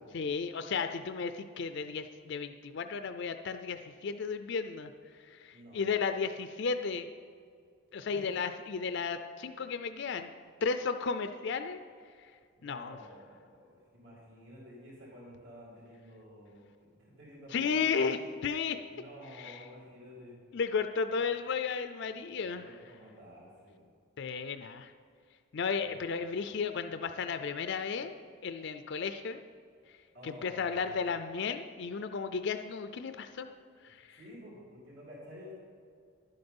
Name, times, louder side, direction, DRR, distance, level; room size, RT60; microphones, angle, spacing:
voice 1, 0.1-7.1 7.9-10.3 10.6-11.8 12.2-12.3 12.6-13.0 17.5-18.8 19.4-19.6 20.5-22.6 24.2-24.9 25.5-28.2 28.4-29.4 30.2-33.5 33.8-34.2, left 5 dB, 55° left, 9 dB, 0.4 m, -34 dB
voice 2, 5.5-6.0 8.0-8.3 12.6-18.2 18.9-20.4 22.2-23.9 25.8-26.4 30.1-31.0 34.1-35.5, equal, 60° right, -7 dB, 2.8 m, -51 dB
11.0 x 7.8 x 5.4 m, 2.2 s
head